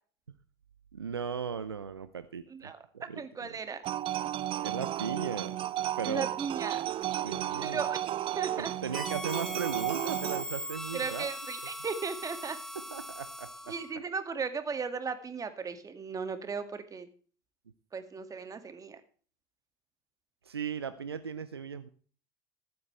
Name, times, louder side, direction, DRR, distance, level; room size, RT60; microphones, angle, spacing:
voice 1, 0.9-3.6 4.6-5.6 6.0-6.3 7.2-7.8 8.6-11.3 12.7-13.8 20.4-21.9, right 6 dB, 90° right, 14 dB, 0.6 m, -37 dB
voice 2, 2.5-3.8 6.0-6.8 7.6-8.7 10.9-12.6 13.7-17.1 17.9-19.0, right 5 dB, 25° right, 10 dB, 2.1 m, -36 dB
sound 1, 3.8-10.4, right 12 dB, 45° right, 0.6 m, -33 dB
Harmonica, 8.9-14.0, equal, 5° left, 2.0 m, -40 dB
15.0 x 12.0 x 3.3 m, 0.43 s
figure-of-eight pair, 65°, 13 cm